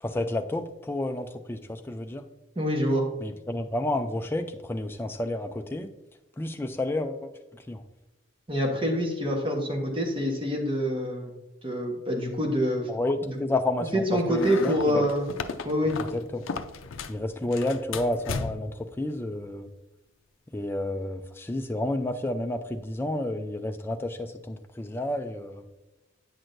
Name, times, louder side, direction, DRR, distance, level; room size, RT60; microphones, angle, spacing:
voice 1, 0.0-2.2 3.2-5.9 6.4-7.8 12.9-15.1 16.0-16.5 17.1-19.7 20.5-25.7, left 1 dB, 10° left, 5 dB, 0.3 m, -30 dB
voice 2, 2.6-3.1 8.5-11.3 11.6-12.9 13.2-13.3 13.9-15.3 15.6-16.0, equal, 25° right, 0 dB, 1.1 m, -26 dB
sound 1, 14.3-17.2 17.5-18.8, left 4 dB, 70° left, 0.5 m, -35 dB
8.7 x 6.1 x 2.6 m, 1.0 s
head